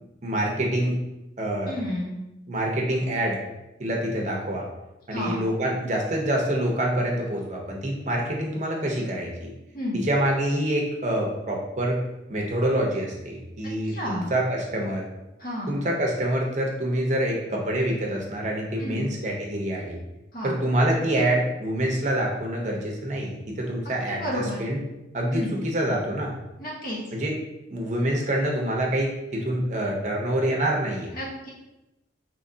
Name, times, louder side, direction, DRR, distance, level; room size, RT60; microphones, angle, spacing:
voice 1, 0.2-1.0 1.4-1.8 2.5-3.4 3.8-4.7 5.1-9.5 9.9-12.0 12.3-15.1 15.7-20.0 20.4-24.8 25.1-26.3 27.1-27.4 27.7-31.1, right 1 dB, 40° right, -1 dB, 0.7 m, -26 dB
voice 2, 1.7-2.1 5.1-5.4 9.7-10.0 13.9-14.3 15.4-15.7 18.8-19.1 20.3-20.6 23.8-24.7 25.3-25.6 26.6-27.0 31.1-31.5, equal, 45° left, -5 dB, 1.0 m, -31 dB
4.7 x 3.0 x 2.7 m, 0.96 s
head